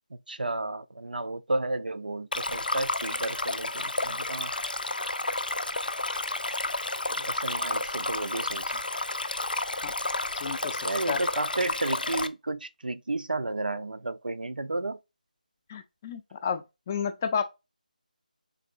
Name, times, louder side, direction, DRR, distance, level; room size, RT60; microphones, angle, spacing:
voice 1, 0.1-4.5 7.1-8.8 10.8-15.0, right 2 dB, 80° right, 0.5 m, -32 dB
Stream, 2.3-12.3, left 2 dB, 85° left, 0.5 m, -31 dB
voice 2, 10.4-10.8 11.1-11.2 15.7-17.4, left 6 dB, 20° left, 0.4 m, -31 dB
3.9 x 3.6 x 2.4 m
figure-of-eight pair, 160°, 5 cm